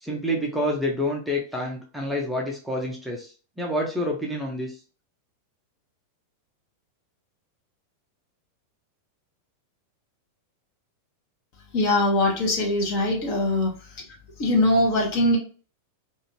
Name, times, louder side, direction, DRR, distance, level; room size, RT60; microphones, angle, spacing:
voice 1, 0.0-3.3 3.6-4.7, left 1 dB, 5° right, -1 dB, 0.6 m, -28 dB
voice 2, 11.7-13.7 14.4-15.4, left 1 dB, 45° left, -1 dB, 1.0 m, -21 dB
2.6 x 2.5 x 2.8 m, 0.38 s
figure-of-eight pair, 90°, 0 cm